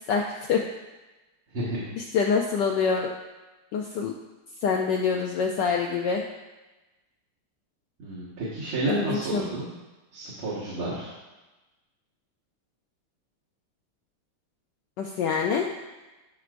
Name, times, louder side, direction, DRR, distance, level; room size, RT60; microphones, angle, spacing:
voice 1, 0.1-0.6 2.0-3.1 3.7-4.1 4.6-6.2 8.9-9.5 15.0-15.7, left 5 dB, 80° left, 1 dB, 1.0 m, -25 dB
voice 2, 1.5-1.9 8.0-9.7 10.1-11.1, right 2 dB, 75° right, -10 dB, 2.5 m, -31 dB
12.5 x 4.6 x 2.5 m, 1.1 s
omnidirectional pair, 2.4 m